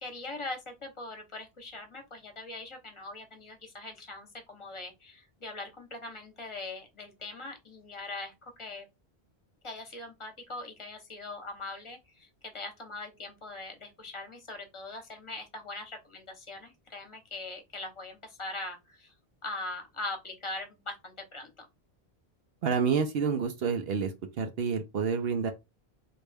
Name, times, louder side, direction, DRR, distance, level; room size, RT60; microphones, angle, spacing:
voice 1, 0.0-8.9 9.6-19.1 19.4-21.7, left 2 dB, 30° left, 0.9 m, -41 dB
voice 2, 22.6-25.5, right 6 dB, 70° right, 0.8 m, -29 dB
3.2 x 2.6 x 3.4 m
omnidirectional pair, 1.0 m